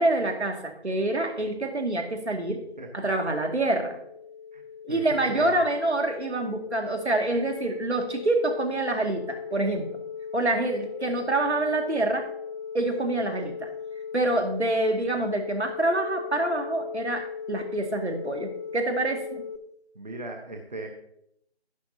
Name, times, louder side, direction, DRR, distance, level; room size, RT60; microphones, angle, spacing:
voice 1, 0.0-2.6 2.9-4.0 4.8-10.0 10.3-12.3 12.7-13.7 14.1-19.4, right 2 dB, 75° right, 4 dB, 2.2 m, -26 dB
sound 1, 2.6-19.6, left 6 dB, 40° left, 0.7 m, -38 dB
voice 2, 2.8-3.1 4.5-4.6 4.9-5.5 19.9-20.9, right 1 dB, 40° right, 2 dB, 1.2 m, -38 dB
11.5 x 11.0 x 2.8 m, 0.75 s
figure-of-eight pair, 170°, 34 cm